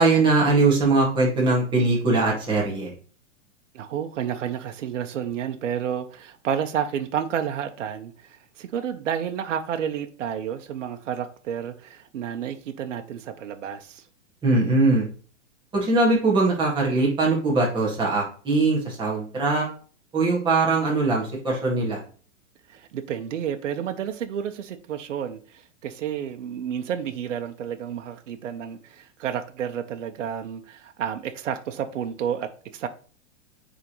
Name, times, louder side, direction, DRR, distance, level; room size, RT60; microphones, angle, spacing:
voice 1, 0.0-2.9 14.4-15.1 15.7-19.7 20.1-22.0, right 3 dB, 15° right, 1.8 m, -21 dB
voice 2, 3.7-14.0 22.7-32.9, right 8 dB, 85° right, 0.9 m, -30 dB
9.1 x 3.6 x 3.1 m
hypercardioid pair, 160°, 36 cm